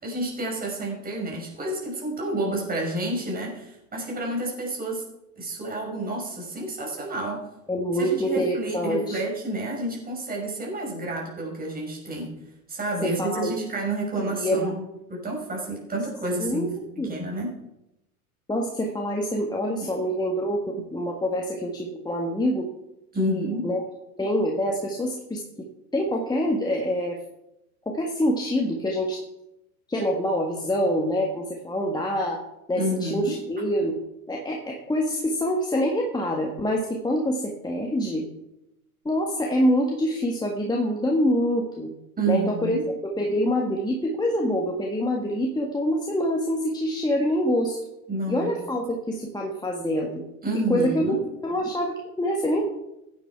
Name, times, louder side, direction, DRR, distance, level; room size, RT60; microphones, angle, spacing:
voice 1, 0.0-5.0 5.4-7.4 7.9-12.3 12.7-14.8 15.1-17.5 19.8-20.0 23.1-23.7 32.7-33.4 42.2-42.8 48.1-48.5 50.4-51.2, right 2 dB, 20° right, -1 dB, 5.8 m, -29 dB
voice 2, 7.7-9.2 13.0-13.6 14.2-14.7 16.4-16.7 17.0-17.1 18.5-22.7 23.2-23.8 24.2-25.7 25.9-27.2 27.8-29.2 29.9-32.4 32.7-33.9 34.3-38.3 39.0-41.9 42.3-42.8 43.2-47.8 48.3-50.2 50.7-51.2 51.4-52.6, equal, 10° left, -1 dB, 1.7 m, -26 dB
15.5 x 9.4 x 4.7 m, 0.90 s
hypercardioid pair, 90°, 44 cm